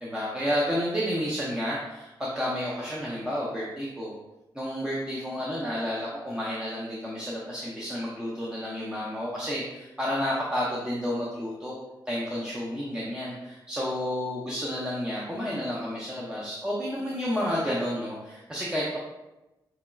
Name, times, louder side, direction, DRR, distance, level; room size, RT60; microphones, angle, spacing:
voice 1, 0.0-4.1 4.5-11.8 12.1-19.0, equal, 10° right, -6 dB, 0.6 m, -31 dB
5.5 x 3.0 x 2.3 m, 0.99 s
wide cardioid pair, 165°, 8 cm